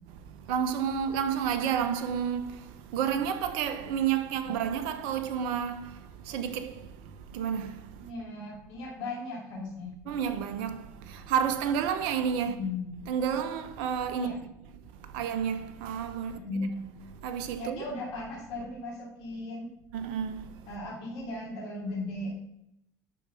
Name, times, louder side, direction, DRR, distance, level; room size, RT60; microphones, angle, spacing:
voice 1, 0.5-5.9 6.3-6.8 7.3-7.8 10.1-12.7 13.1-14.3 15.1-16.7 17.2-17.8 19.9-20.4, right 8 dB, 70° right, 1.1 m, -30 dB
voice 2, 8.0-9.9 12.4-12.9 14.1-14.4 16.2-16.7 17.6-19.7 20.7-22.3, left 2 dB, 65° left, 3.4 m, -37 dB
11.5 x 4.8 x 5.8 m
hypercardioid pair, 70°, 9 cm